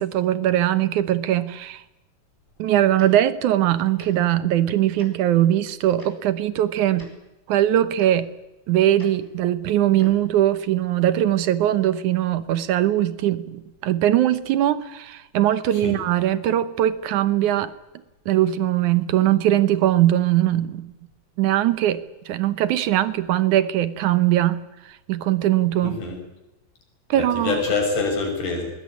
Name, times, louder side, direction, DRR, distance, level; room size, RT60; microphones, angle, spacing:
voice 1, 0.0-1.8 2.6-7.1 7.5-8.3 8.7-17.7 18.3-20.9 21.4-24.6 25.1-26.0 27.1-27.6, right 12 dB, 70° right, 2.1 m, -21 dB
Tick-tock, 3.0-3.1 4.0-4.1 5.0-5.1 6.0-6.1 6.9-7.1 8.0-8.1 9.0-9.1 10.0-10.2, right 1 dB, 5° right, 4.6 m, -41 dB
voice 2, 25.8-26.2 27.1-28.7, left 4 dB, 55° left, 7.3 m, -25 dB
21.0 x 19.0 x 9.8 m
omnidirectional pair, 4.2 m